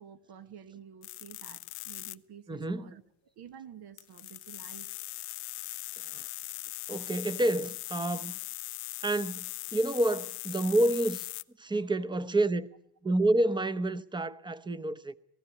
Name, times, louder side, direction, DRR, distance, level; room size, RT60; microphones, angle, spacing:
voice 1, 0.0-3.0 3.3-4.9 11.6-11.9, right 8 dB, 65° right, 1.7 m, -50 dB
sound 1, 1.0-2.1 4.0-11.4, left 19 dB, 80° left, 0.8 m, -40 dB
voice 2, 2.5-2.9 6.0-6.3 6.9-8.4 9.0-11.3 11.6-12.7 13.0-15.1, right 1 dB, 10° right, 0.8 m, -29 dB
19.0 x 15.5 x 9.5 m
cardioid pair, 135°, 41 cm